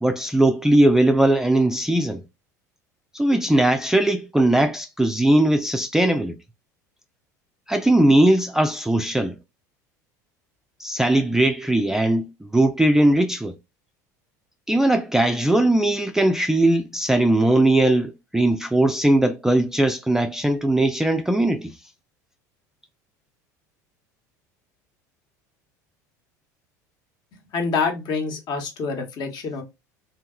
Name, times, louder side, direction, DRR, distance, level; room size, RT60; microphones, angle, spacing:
voice 1, 0.0-2.2 3.1-6.4 7.7-9.4 10.8-13.5 14.7-21.7, right 1 dB, 5° right, 0.3 m, -19 dB
voice 2, 27.5-29.6, left 4 dB, 50° left, 1.0 m, -26 dB
2.8 x 2.8 x 2.3 m
hypercardioid pair, 85°, 9 cm